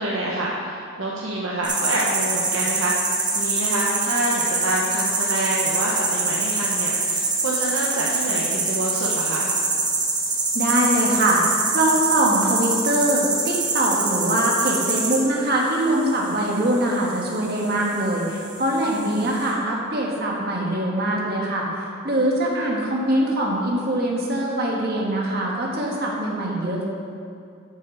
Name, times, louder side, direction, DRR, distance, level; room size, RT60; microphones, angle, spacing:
voice 1, 0.0-9.5 16.5-16.7 19.2-19.3 22.5-22.6, right 1 dB, 80° right, -4 dB, 1.0 m, -27 dB
sound 1, 1.6-19.5, right 3 dB, 20° right, 1.0 m, -25 dB
voice 2, 10.5-11.4 11.7-26.8, right 1 dB, 50° right, -2 dB, 1.6 m, -23 dB
8.4 x 5.8 x 6.5 m, 2.4 s
head